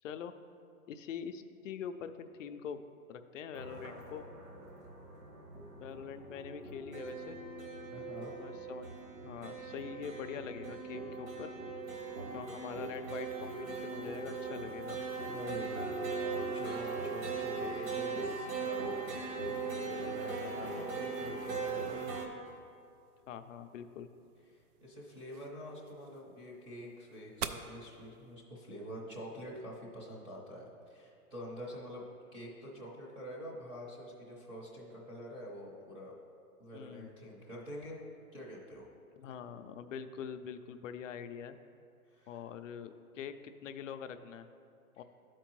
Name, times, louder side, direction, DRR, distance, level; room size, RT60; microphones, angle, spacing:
voice 1, 0.0-0.3 0.9-2.8 3.1-4.3 5.8-7.4 8.2-8.9 9.2-11.5 12.3-15.0 23.3-24.1 36.7-37.1 39.1-41.6 42.3-44.5 45.0-45.1, left 7 dB, 60° left, 9 dB, 0.5 m, -44 dB
sound 1, 3.5-22.3, right 4 dB, 60° right, 1.4 m, -39 dB
voice 2, 7.9-8.3 15.2-18.9 19.6-22.1 24.5-32.1 32.3-36.2 36.6-38.0 38.3-38.8 42.1-42.4, equal, 10° right, -5 dB, 0.7 m, -46 dB
sound 2, 22.4-28.4, right 8 dB, 75° right, 0.6 m, -48 dB
11.5 x 4.5 x 3.0 m, 2.4 s
hypercardioid pair, 140°, 45 cm